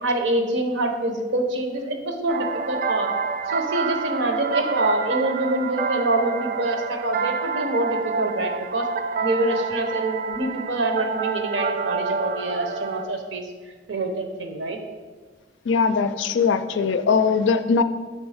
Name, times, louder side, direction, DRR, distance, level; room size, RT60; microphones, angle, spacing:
voice 1, 0.0-3.1 3.5-8.9 9.2-13.5 13.9-14.8, right 2 dB, 75° right, 5 dB, 0.8 m, -25 dB
sound 1, 2.3-13.0, right 5 dB, 45° right, 0.3 m, -28 dB
voice 2, 15.7-17.8, left 5 dB, 75° left, 10 dB, 0.4 m, -20 dB
6.6 x 3.5 x 4.8 m, 1.5 s
head